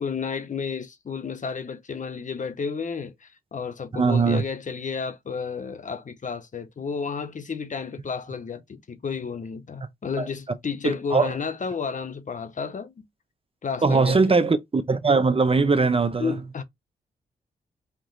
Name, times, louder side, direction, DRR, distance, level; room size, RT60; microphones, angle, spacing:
voice 1, 0.0-13.0 13.6-14.4 16.2-16.6, left 5 dB, 50° left, 0.7 m, -32 dB
voice 2, 3.9-4.4 10.2-10.3 10.8-11.3 13.8-16.4, right 4 dB, 35° right, 0.7 m, -21 dB
4.4 x 3.0 x 2.6 m
cardioid pair, 50°, 17 cm